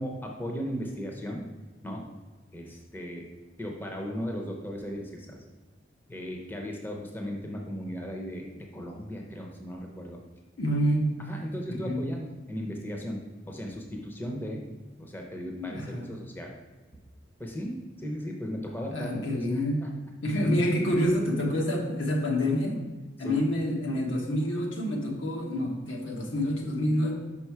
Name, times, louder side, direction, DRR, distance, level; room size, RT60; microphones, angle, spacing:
voice 1, 0.0-1.5 1.8-2.0 2.5-3.3 3.6-5.4 6.1-10.2 11.3-14.7 15.0-16.6 17.4-19.2 19.5-19.9 23.2-23.4, equal, 10° left, 0 dB, 0.7 m, -36 dB
voice 2, 10.6-11.2 11.7-12.1 15.6-16.1 18.9-19.9 20.2-22.8 23.2-27.1, equal, 80° left, 0 dB, 1.3 m, -27 dB
5.5 x 5.3 x 4.6 m, 1.3 s
head